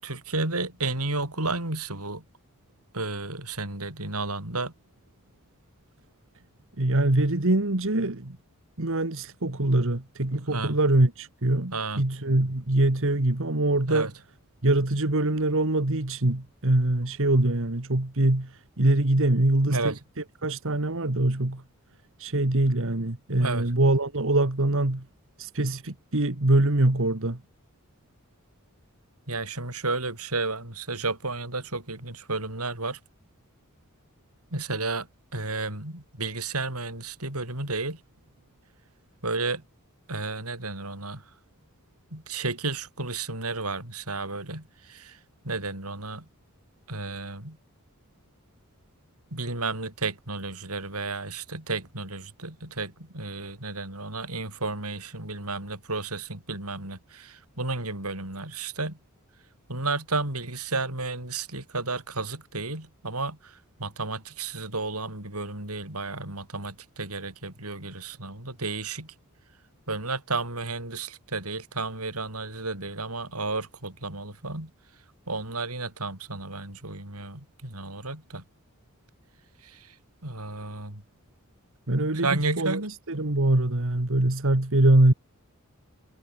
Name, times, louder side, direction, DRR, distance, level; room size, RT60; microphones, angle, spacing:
voice 1, 0.0-2.2 2.9-4.7 10.5-10.8 11.7-12.0 13.9-14.1 19.7-20.0 23.4-23.7 29.3-33.0 34.5-35.1 35.3-38.0 39.2-39.6 40.1-41.2 42.1-45.2 45.4-46.3 46.9-47.6 49.3-59.0 59.7-69.1 69.9-74.7 75.3-78.4 79.6-80.0 80.2-81.0 82.2-82.9, right 3 dB, 90° right, 7.2 m, -32 dB
voice 2, 6.8-8.4 8.8-14.1 14.6-19.9 20.4-21.6 22.2-25.1 25.4-27.4 81.9-82.8 83.1-85.1, right 1 dB, 65° right, 2.0 m, -23 dB
head